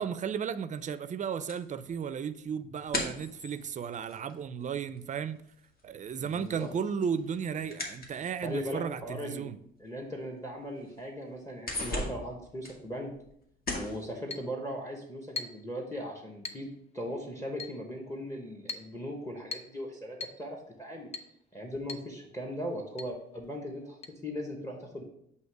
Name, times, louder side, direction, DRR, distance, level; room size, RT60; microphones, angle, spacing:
voice 1, 0.0-5.4 5.8-9.6, right 7 dB, 40° right, 0.4 m, -34 dB
sound 1, 1.5-5.2 5.5-8.7 9.4-9.5 10.0-10.1 10.5-11.0 11.3-13.4 13.6-14.0, left 2 dB, 50° left, 1.4 m, -39 dB
voice 2, 6.2-6.7 8.4-9.5 9.8-13.1 13.7-16.7 16.9-21.1 21.5-25.0, equal, 15° left, 1.0 m, -38 dB
Chink clink, 14.3-14.5 15.4-15.7 16.4-16.7 17.6-17.8 18.7-18.9 19.5-19.8 20.2-20.4 21.1-21.3 21.9-22.1 22.4-22.5 23.0-23.1 24.0-24.1, left 4 dB, 35° left, 0.6 m, -40 dB
7.9 x 2.8 x 4.6 m
cardioid pair, 90°, 20 cm